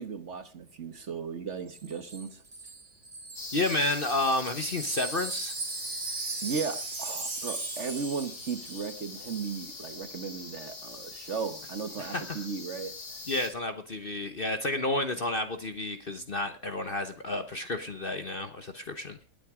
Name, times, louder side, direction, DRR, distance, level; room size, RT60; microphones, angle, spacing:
voice 1, 0.0-2.4 6.4-12.9, right 5 dB, 45° right, 1.4 m, -36 dB
Wind chime, 1.7-9.0 9.2-9.4, right 3 dB, 25° right, 1.0 m, -39 dB
sound 1, 3.4-13.5, left 3 dB, 60° left, 3.4 m, -43 dB
voice 2, 3.5-5.5 12.0-12.4 13.3-19.2, left 2 dB, 35° left, 1.0 m, -31 dB
19.5 x 9.2 x 4.9 m
omnidirectional pair, 1.9 m